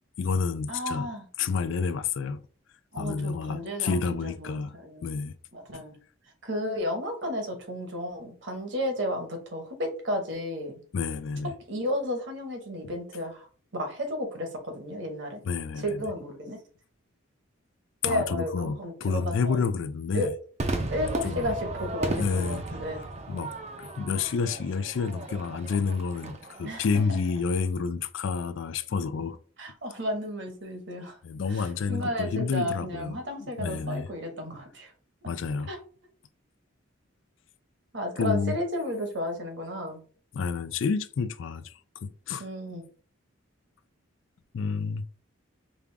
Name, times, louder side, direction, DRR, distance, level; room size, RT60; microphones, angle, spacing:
voice 1, 0.2-1.1 1.4-2.4 3.0-4.7 5.0-5.3 5.7-5.8 10.9-11.5 12.8-12.9 15.4-16.1 18.0-20.3 20.8-20.9 21.2-21.5 22.2-22.6 23.3-23.5 23.8-29.4 31.2-34.1 35.3-35.7 38.2-38.6 40.3-41.7 42.0-42.4 44.5-45.1, left 5 dB, 65° left, 0.4 m, -29 dB
voice 2, 0.7-1.2 2.9-5.1 5.5-6.0 6.4-10.7 11.7-13.5 13.7-15.4 15.8-16.6 18.0-19.6 20.1-20.3 20.9-23.0 26.6-26.9 29.6-31.2 31.5-34.9 35.7-35.8 37.9-40.0 42.4-42.8, left 1 dB, 60° right, 1.2 m, -33 dB
Crowd / Fireworks, 20.6-27.1, right 2 dB, 30° right, 0.5 m, -35 dB
5.3 x 2.4 x 3.4 m
head